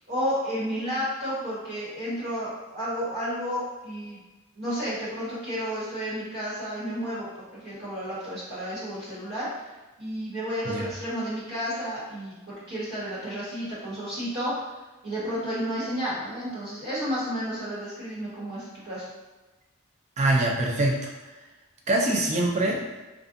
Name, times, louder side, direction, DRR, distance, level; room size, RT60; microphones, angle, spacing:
voice 1, 0.1-4.2 4.5-9.7 10.0-14.5 15.0-19.1, equal, 55° right, -10 dB, 1.3 m, -32 dB
voice 2, 20.2-21.1 21.9-22.9, right 2 dB, 35° right, -1 dB, 0.4 m, -24 dB
2.5 x 2.3 x 2.5 m, 1.1 s
head